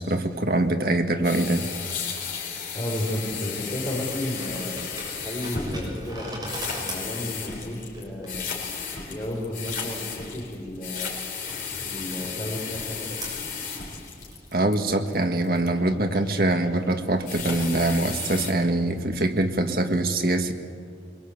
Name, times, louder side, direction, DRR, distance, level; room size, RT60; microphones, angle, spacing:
voice 1, 0.0-1.7 14.5-20.5, right 2 dB, 55° right, 6 dB, 1.8 m, -24 dB
sound 1, 1.2-14.7 17.1-18.5, left 6 dB, 50° left, 4.2 m, -34 dB
voice 2, 2.7-4.8 5.2-6.3 6.8-8.7 9.1-11.1 11.8-13.3, left 1 dB, 30° left, -6 dB, 5.2 m, -32 dB
sound 2, 3.8-19.2, right 1 dB, 20° right, 6.8 m, -43 dB
23.5 x 22.0 x 8.3 m, 2.2 s
head